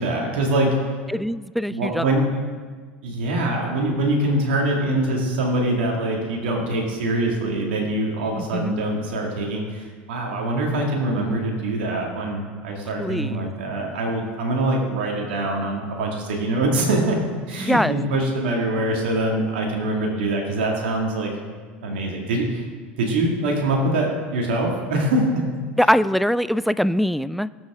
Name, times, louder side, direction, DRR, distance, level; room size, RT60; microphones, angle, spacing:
voice 1, 0.0-0.9 1.7-2.2 3.0-17.2 17.5-21.3 21.8-22.7 23.0-25.4, right 1 dB, 75° right, 0 dB, 2.2 m, -24 dB
voice 2, 1.1-2.1 8.4-8.7 12.9-13.5 17.6-18.0 25.8-27.5, equal, ahead, 16 dB, 0.3 m, -22 dB
19.0 x 7.3 x 3.7 m, 1.5 s
hypercardioid pair, 80°, 6 cm